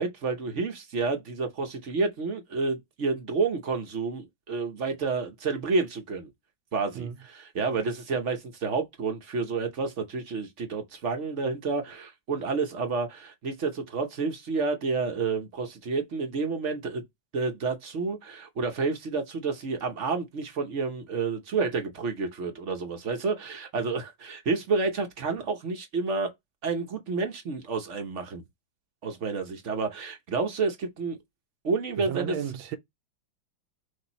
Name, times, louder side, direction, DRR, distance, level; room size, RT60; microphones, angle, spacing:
voice 1, 0.0-6.3 6.7-7.1 7.3-17.0 17.3-26.3 26.6-28.4 29.0-31.2 31.6-32.3, right 4 dB, 50° right, 0.9 m, -30 dB
voice 2, 32.0-32.8, right 9 dB, 85° right, 1.5 m, -33 dB
6.4 x 2.7 x 2.9 m
omnidirectional pair, 2.2 m